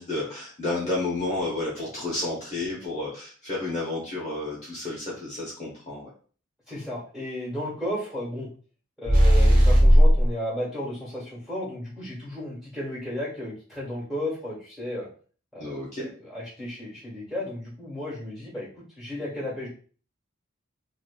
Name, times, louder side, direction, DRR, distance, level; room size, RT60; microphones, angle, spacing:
voice 1, 0.0-6.1 15.6-16.1, left 2 dB, 30° left, -6 dB, 0.8 m, -31 dB
voice 2, 6.7-8.5 9.0-15.1 15.5-15.8 16.2-18.7 19.0-19.7, left 1 dB, ahead, -8 dB, 1.5 m, -33 dB
sound 1, 9.0-10.3, equal, 40° right, 0.8 m, -15 dB
2.8 x 2.6 x 2.3 m, 0.41 s
head